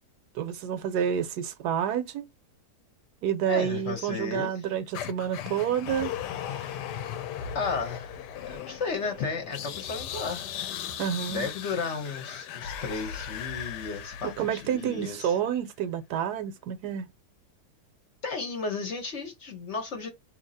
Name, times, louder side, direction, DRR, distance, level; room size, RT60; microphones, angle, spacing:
voice 1, 0.3-2.3 3.2-6.1 6.5-6.7 11.0-11.5 14.2-17.1, right 9 dB, 80° right, 1.2 m, -29 dB
voice 2, 3.5-4.5 7.5-8.2 8.5-10.5 11.3-15.3 18.2-20.1, left 4 dB, 50° left, 1.0 m, -33 dB
sound 1, 4.9-15.1, left 9 dB, 85° left, 1.2 m, -37 dB
2.8 x 2.7 x 3.9 m
omnidirectional pair, 1.8 m